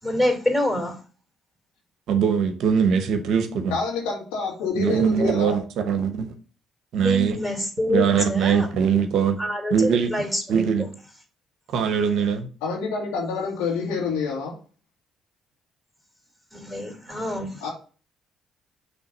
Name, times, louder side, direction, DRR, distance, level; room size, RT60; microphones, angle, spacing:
voice 1, 0.0-1.0 6.9-8.7 9.4-10.7 16.5-17.7, left 1 dB, ahead, 3.3 m, -26 dB
voice 2, 2.1-3.8 4.7-6.3 6.9-7.4 7.9-9.4 9.7-10.1 10.5-10.9 11.7-12.5, right 7 dB, 70° right, 0.9 m, -22 dB
voice 3, 3.7-5.6 12.6-14.5 17.6-17.7, left 4 dB, 85° left, 1.9 m, -27 dB
6.2 x 3.2 x 5.3 m
hypercardioid pair, 55°, 0 cm